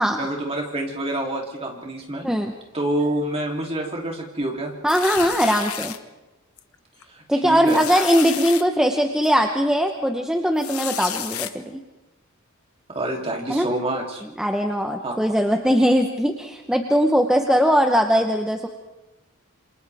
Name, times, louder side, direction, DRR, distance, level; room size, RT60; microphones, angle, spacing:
voice 1, 0.2-2.3 2.7-4.7 7.1-7.8 12.9-14.2 15.0-15.1, right 1 dB, 30° right, -1 dB, 3.2 m, -27 dB
voice 2, 4.8-5.9 7.3-11.8 13.5-13.7 14.4-18.7, equal, 5° right, 3 dB, 1.0 m, -20 dB
sound 1, 4.9-6.0 6.6-6.7 7.0-7.1 7.7-8.6 9.2-9.3 10.6-11.5, left 10 dB, 85° left, 1.0 m, -31 dB
27.5 x 27.0 x 3.6 m, 1.0 s
head